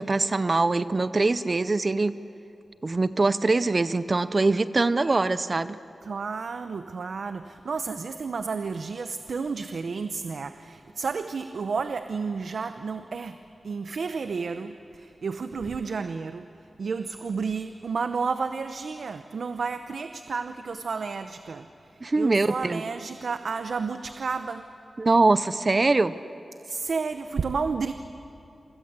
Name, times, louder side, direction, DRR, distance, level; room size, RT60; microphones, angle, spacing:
voice 1, 0.0-2.2 2.8-5.8 22.0-22.8 25.0-26.2, right 3 dB, 35° right, 13 dB, 0.6 m, -23 dB
voice 2, 6.0-13.4 13.6-16.5 16.8-21.7 22.1-24.7 26.6-27.9, right 5 dB, 70° right, 9 dB, 0.8 m, -31 dB
28.5 x 25.0 x 8.2 m, 2.9 s
wide cardioid pair, 145°, 0 cm